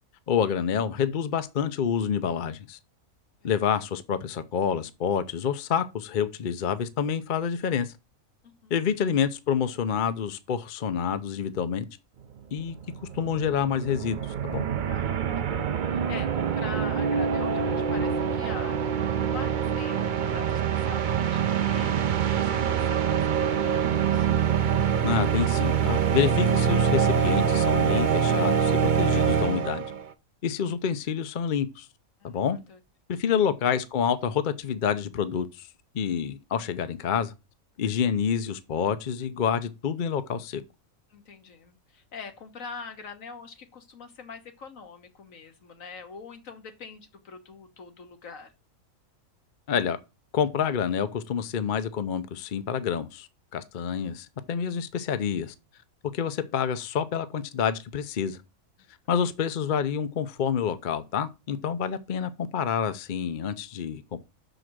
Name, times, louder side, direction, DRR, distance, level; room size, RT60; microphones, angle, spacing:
voice 1, 0.3-2.8 3.4-7.9 8.7-11.8 12.5-14.6 25.0-29.8 30.4-31.9 32.2-32.6 33.1-35.7 35.9-37.3 37.8-40.6 49.7-50.0 50.3-53.3 53.5-55.5 56.1-58.4 59.1-64.2, left 7 dB, 50° left, 0.6 m, -28 dB
voice 2, 8.4-8.7 14.8-24.3 32.2-32.4 32.7-32.8 33.4-33.5 41.1-48.5 59.2-59.3, left 5 dB, 70° left, 1.6 m, -44 dB
sound 1, 12.3-12.4 12.6-30.0, right 7 dB, 55° right, 0.5 m, -25 dB
6.2 x 5.1 x 6.1 m
omnidirectional pair, 1.5 m